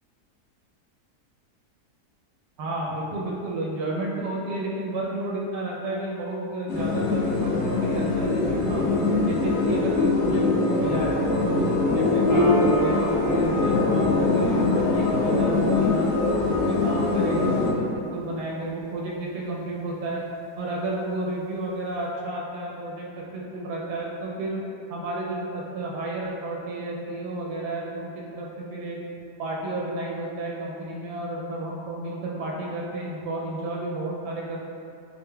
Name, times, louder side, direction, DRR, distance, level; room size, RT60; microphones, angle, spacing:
voice 1, 2.6-8.9 9.2-16.1 16.5-20.2 20.6-24.6 24.9-29.0 29.4-34.7, right 2 dB, 85° right, -3 dB, 1.2 m, -32 dB
Ambience Space, 6.7-17.7, left 3 dB, 85° left, 1.2 m, -23 dB
Piano, 12.3-19.2, equal, 70° left, 1.4 m, -31 dB
4.2 x 2.2 x 3.5 m, 2.5 s
omnidirectional pair, 1.7 m